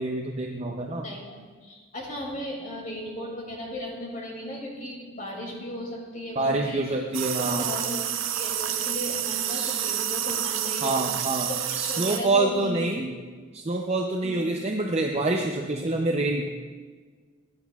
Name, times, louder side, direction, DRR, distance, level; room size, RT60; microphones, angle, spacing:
voice 1, 0.0-1.0 6.4-7.7 9.5-9.9 10.8-11.5 11.7-13.2 13.5-16.5, right 2 dB, 30° right, 1 dB, 0.6 m, -26 dB
voice 2, 1.0-7.0 7.4-11.0 11.5-13.0 14.2-14.4, left 1 dB, 40° left, -2 dB, 2.5 m, -36 dB
sound 1, 7.1-12.2, right 11 dB, 75° right, 0.6 m, -29 dB
16.0 x 10.0 x 2.4 m, 1.5 s
head